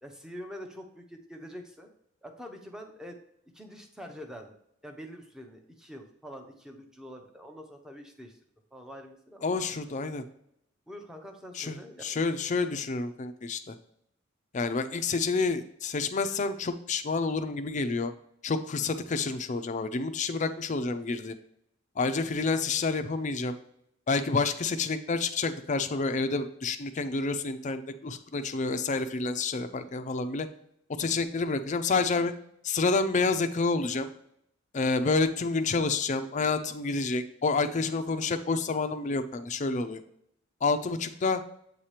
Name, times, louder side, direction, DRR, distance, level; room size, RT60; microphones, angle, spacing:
voice 1, 0.0-1.9 2.2-3.2 3.5-4.5 4.8-8.4 8.7-9.5 10.9-12.1, equal, 5° right, 3 dB, 0.7 m, -45 dB
voice 2, 9.4-10.2 11.5-13.8 14.5-18.1 18.4-21.4 22.0-23.5 24.1-30.5 31.0-32.3 32.6-34.1 34.7-40.0 40.6-41.4, left 4 dB, 35° left, 9 dB, 0.5 m, -29 dB
8.0 x 2.9 x 4.9 m, 0.73 s
head